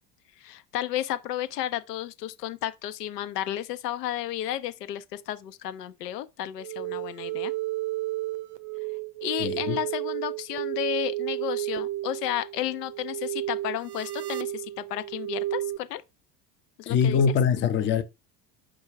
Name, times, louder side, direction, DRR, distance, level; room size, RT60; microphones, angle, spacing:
voice 1, 0.4-7.5 9.2-16.0 16.8-17.2, left 12 dB, 70° left, 0.6 m, -32 dB
sound 1, 6.6-15.8, right 17 dB, 50° right, 0.6 m, -32 dB
voice 2, 9.4-9.8 16.9-18.0, left 7 dB, 25° left, 0.6 m, -23 dB
4.4 x 2.3 x 4.7 m
figure-of-eight pair, 70°, 49 cm